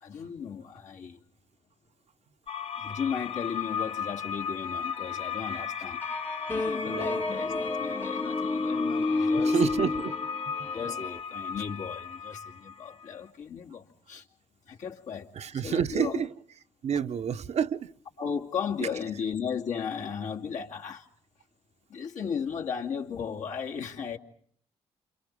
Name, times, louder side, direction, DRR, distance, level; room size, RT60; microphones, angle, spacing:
voice 1, 0.0-1.2 2.8-6.0 6.5-9.7 10.7-14.3 14.7-15.3 15.6-16.3 18.2-21.1 21.9-24.2, left 7 dB, 75° left, 2.6 m, -35 dB
sound 1, 2.5-13.1, left 7 dB, 45° left, 1.2 m, -36 dB
sound 2, 6.0-11.2, left 2 dB, 15° left, 1.0 m, -30 dB
voice 2, 6.9-7.2 9.4-10.1 15.3-16.3 16.8-17.9 18.8-18.9, right 7 dB, 60° right, 1.0 m, -29 dB
28.5 x 28.0 x 5.4 m
supercardioid pair, 50°, 13 cm